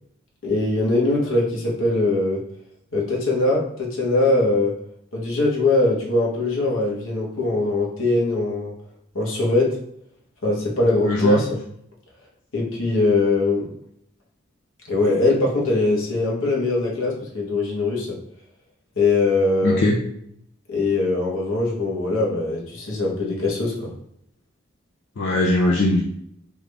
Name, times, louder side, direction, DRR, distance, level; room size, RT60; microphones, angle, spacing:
voice 1, 0.4-2.4 2.9-4.8 5.1-8.7 9.1-9.8 10.4-11.5 12.5-13.7 14.9-18.2 19.0-19.8 20.7-23.9, left 2 dB, 80° left, -3 dB, 1.1 m, -21 dB
voice 2, 11.1-11.4 19.6-20.0 25.2-26.0, left 2 dB, 60° left, -1 dB, 0.5 m, -19 dB
3.6 x 2.4 x 3.3 m, 0.73 s
head